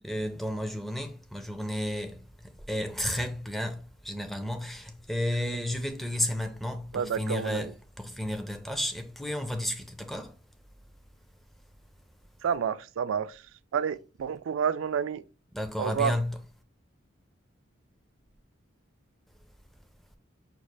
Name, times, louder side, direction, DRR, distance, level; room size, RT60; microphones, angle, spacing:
voice 1, 0.0-10.3 15.5-16.4, left 1 dB, ahead, 0.4 m, -32 dB
voice 2, 6.9-7.7 12.4-13.4 13.7-15.2 15.8-16.1, right 7 dB, 80° right, 0.3 m, -29 dB
5.9 x 2.4 x 3.2 m
head